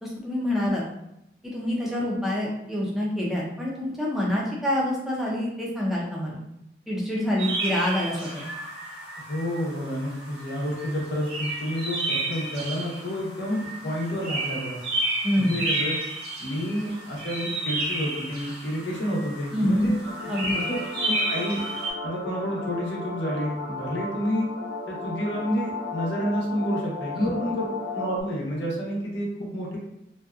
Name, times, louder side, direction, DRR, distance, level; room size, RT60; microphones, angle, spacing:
voice 1, 0.0-0.9 1.4-6.4 6.9-8.3 15.2-15.5 19.5-19.9 20.3-20.6 27.2-27.3, left 1 dB, ahead, -5 dB, 0.5 m, -26 dB
sound 1, 7.4-21.9, right 2 dB, 75° right, 1.3 m, -32 dB
voice 2, 9.3-14.8 15.4-16.0 16.4-20.0 20.5-21.6 22.0-24.5 24.9-27.7 27.9-29.8, equal, 85° left, -2 dB, 0.7 m, -29 dB
sound 2, 20.0-28.2, left 3 dB, 25° left, 0.9 m, -35 dB
2.6 x 2.2 x 2.3 m, 0.84 s
head